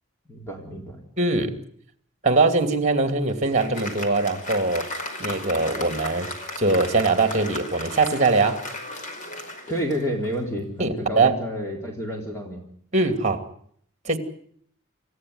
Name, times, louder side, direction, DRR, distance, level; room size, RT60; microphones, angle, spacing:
voice 1, 0.3-1.0 9.7-12.6, equal, 15° left, 0 dB, 3.7 m, -30 dB
voice 2, 1.2-1.6 2.2-4.8 5.2-6.3 6.6-8.6 10.8-11.3 12.9-13.4 14.0-14.2, right 3 dB, 35° right, 8 dB, 2.7 m, -22 dB
Applause, 3.0-10.5, left 1 dB, 40° left, 5.1 m, -36 dB
28.0 x 15.5 x 9.6 m, 0.65 s
head